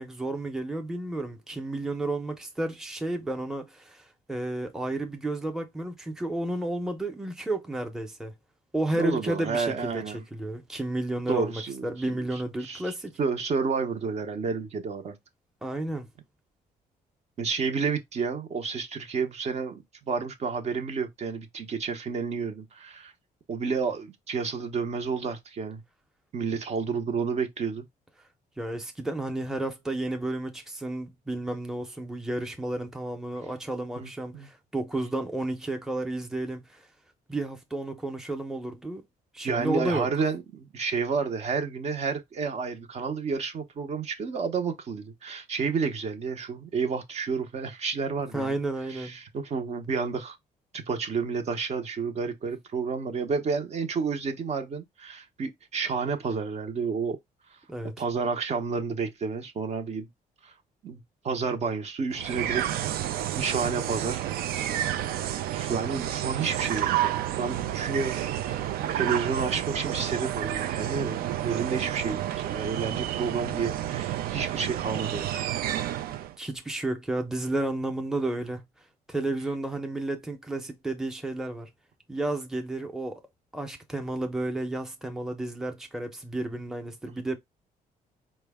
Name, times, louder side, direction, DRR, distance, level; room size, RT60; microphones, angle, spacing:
voice 1, 0.0-8.3 8.7-10.0 10.3-13.1 15.6-16.1 28.6-36.8 37.3-39.0 39.3-40.1 48.3-49.2 57.7-57.9 76.4-78.6 79.1-81.7 82.1-83.2 83.5-87.4, right 2 dB, 5° right, 0.7 m, -32 dB
voice 2, 8.9-10.2 11.3-15.1 17.4-23.1 23.5-25.8 26.3-27.8 34.0-34.5 39.4-48.6 48.9-50.4 50.7-57.2 58.0-60.1 60.4-60.5 60.8-62.8 63.4-64.3 64.5-64.7 65.2-68.2 68.5-68.6 68.9-75.5, right 5 dB, 45° right, 0.7 m, -30 dB
sound 1, 62.1-76.3, right 12 dB, 80° right, 0.4 m, -30 dB
4.4 x 2.1 x 3.4 m
cardioid pair, 115°, 15 cm